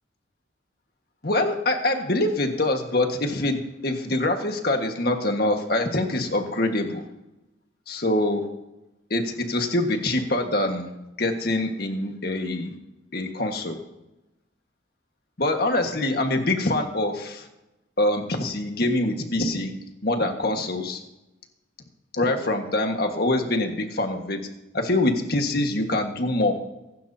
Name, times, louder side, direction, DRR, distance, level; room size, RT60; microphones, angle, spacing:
voice 1, 1.2-7.0 7.9-8.4 9.1-10.9 11.2-12.7 13.1-13.8 15.4-17.5 18.0-19.7 20.0-21.0 22.1-24.5 24.7-26.6, left 2 dB, 50° left, 4 dB, 1.6 m, -24 dB
24.0 x 12.0 x 2.8 m, 0.95 s
head